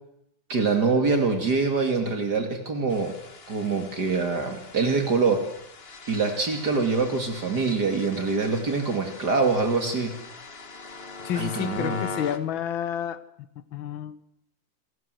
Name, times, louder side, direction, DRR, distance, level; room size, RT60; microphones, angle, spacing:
voice 1, 0.5-3.2 3.5-5.4 6.1-10.1 11.3-12.0, right 4 dB, 55° right, 5 dB, 3.1 m, -24 dB
sound 1, 2.9-12.4, left 4 dB, 35° left, 1.7 m, -41 dB
voice 2, 11.2-13.2 13.7-14.2, left 10 dB, 90° left, 14 dB, 1.9 m, -30 dB
27.0 x 19.0 x 7.9 m, 0.79 s
omnidirectional pair, 2.1 m